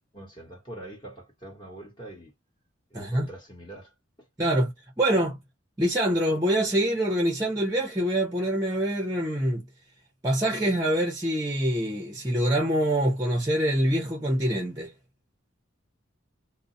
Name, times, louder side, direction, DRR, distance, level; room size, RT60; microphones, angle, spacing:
voice 1, 0.1-2.3 2.9-4.3, right 1 dB, 25° left, 1.2 m, -44 dB
voice 2, 2.9-3.3 4.4-4.7 5.0-5.4 5.8-9.6 10.2-14.9, right 1 dB, 15° right, 0.6 m, -25 dB
2.4 x 2.0 x 2.5 m
head